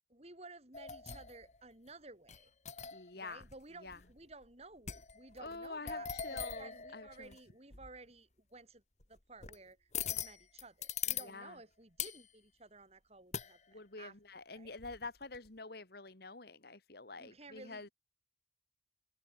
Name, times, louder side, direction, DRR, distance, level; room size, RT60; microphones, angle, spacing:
voice 1, 0.1-2.5 3.1-8.8 9.1-14.1 14.5-14.8 17.2-17.9, right 3 dB, 35° right, 4.5 m, -55 dB
sound 1, 0.7-1.6 2.3-3.1 3.4-3.5 3.9-4.4 4.9-7.4 7.7-8.0 9.0-9.6 9.9-11.3 12.0-12.3 13.3-13.6 14.8-15.5, left 8 dB, 40° left, 2.4 m, -42 dB
voice 2, 2.9-3.4 3.8-4.0 5.4-7.3 11.2-11.6 13.7-17.9, left 3 dB, 55° left, 2.1 m, -47 dB
head